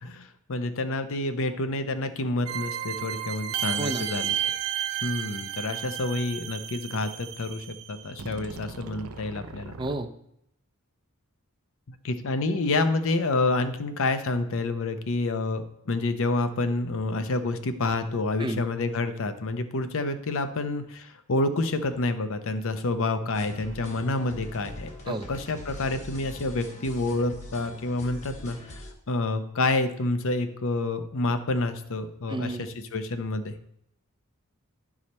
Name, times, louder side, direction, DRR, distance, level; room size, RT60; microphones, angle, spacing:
voice 1, 0.0-4.3 5.0-9.7 11.9-33.5, left 2 dB, 65° left, 10 dB, 0.7 m, -28 dB
sound 1, 2.5-10.0, right 10 dB, 75° right, 0.6 m, -33 dB
voice 2, 9.8-10.1 18.4-18.6 25.1-25.3 32.3-32.7, right 2 dB, 20° right, 8 dB, 0.5 m, -31 dB
sound 2, 23.3-28.9, equal, 30° left, 1.1 m, -43 dB
10.5 x 4.9 x 4.2 m, 0.76 s
head